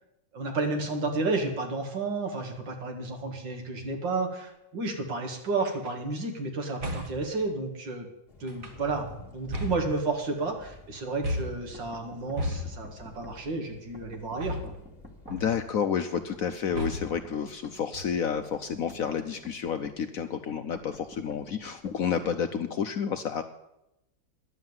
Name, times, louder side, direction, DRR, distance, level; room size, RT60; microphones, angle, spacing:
voice 1, 0.3-8.1 8.4-14.7, right 3 dB, 75° right, 3 dB, 2.6 m, -31 dB
sound 1, 5.6-5.9 6.8-7.3 8.5-9.0 9.5-10.4 11.2-11.7 12.4-13.0 14.4-15.0 15.3-15.7 16.7-17.3 17.9-18.4, left 1 dB, 30° right, 1.4 m, -35 dB
Thunder / Rain, 8.3-15.7, left 2 dB, 35° left, 1.4 m, -50 dB
sound 2, 11.7-13.4 13.9-15.6 16.1-17.8 18.3-20.0 20.7-22.4, equal, 5° right, 1.2 m, -50 dB
voice 2, 15.3-23.4, left 7 dB, 65° left, 8 dB, 0.9 m, -30 dB
10.5 x 7.4 x 9.5 m, 0.88 s
omnidirectional pair, 2.0 m